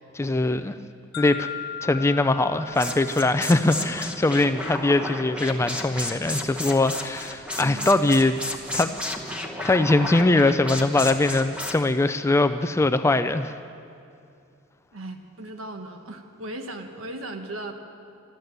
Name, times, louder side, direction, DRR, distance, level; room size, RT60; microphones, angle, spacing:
voice 1, 0.1-0.7 1.2-1.5 1.8-8.4 8.7-8.9 9.6-13.5, left 2 dB, 15° left, 10 dB, 0.3 m, -22 dB
sound 1, 1.1-5.1, left 8 dB, 80° left, 1.1 m, -39 dB
sound 2, 2.7-11.7, left 1 dB, 5° right, 1.0 m, -33 dB
voice 2, 7.6-8.1 14.9-17.7, right 2 dB, 85° right, 5 dB, 1.1 m, -37 dB
12.5 x 12.5 x 7.9 m, 2.5 s
head